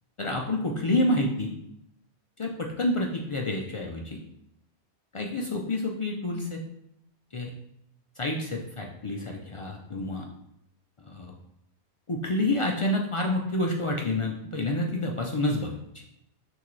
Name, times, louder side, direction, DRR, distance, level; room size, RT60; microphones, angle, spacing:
voice 1, 0.2-1.5 2.4-4.2 5.1-6.6 7.3-7.5 8.2-10.3 11.1-11.3 12.1-16.0, left 1 dB, 45° left, 0 dB, 0.4 m, -28 dB
5.8 x 2.9 x 3.1 m, 0.80 s
omnidirectional pair, 1.1 m